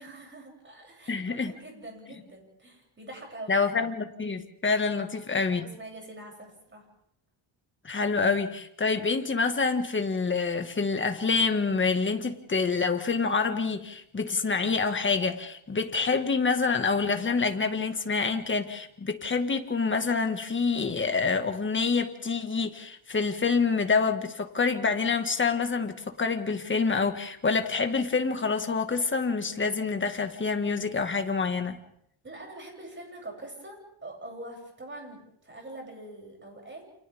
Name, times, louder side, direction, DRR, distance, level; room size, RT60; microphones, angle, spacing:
voice 1, 0.0-3.6 4.9-5.1 5.5-6.8 32.2-36.8, right 1 dB, 25° right, 1 dB, 7.8 m, -44 dB
voice 2, 1.1-1.5 3.5-5.7 7.8-31.8, left 4 dB, 25° left, 6 dB, 1.9 m, -27 dB
29.5 x 28.0 x 3.7 m, 0.73 s
cardioid pair, 130°, 49 cm